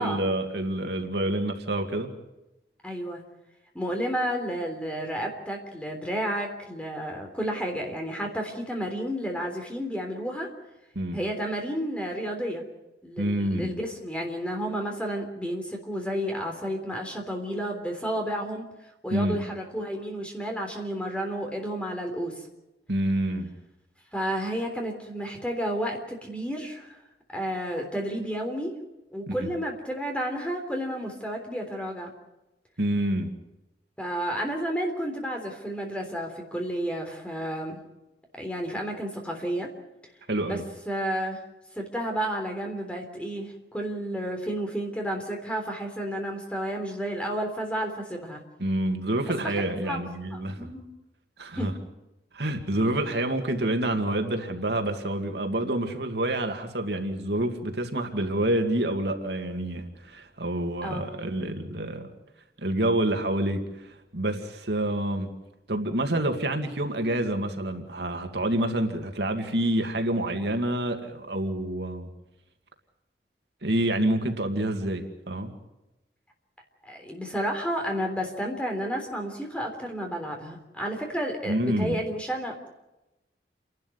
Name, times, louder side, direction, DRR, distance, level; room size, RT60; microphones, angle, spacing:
voice 1, 0.0-2.1 11.0-11.2 13.2-13.7 19.1-19.4 22.9-23.5 29.3-29.5 32.8-33.3 40.3-40.6 48.6-50.7 51.4-51.7 52.3-62.1 62.6-65.3 65.7-72.1 73.6-75.5 81.5-82.0, right 1 dB, 75° right, 5 dB, 2.3 m, -27 dB
voice 2, 2.8-3.2 3.7-10.5 11.1-12.6 13.0-18.7 19.0-22.5 24.1-27.0 27.3-28.7 29.1-32.1 34.0-37.8 38.4-39.7 40.4-40.6 40.8-41.4 41.7-48.4 49.2-50.0 50.3-50.8 51.6-51.7 60.8-61.0 76.8-82.7, equal, 5° left, 2 dB, 3.5 m, -31 dB
29.0 x 12.0 x 9.7 m, 0.98 s
head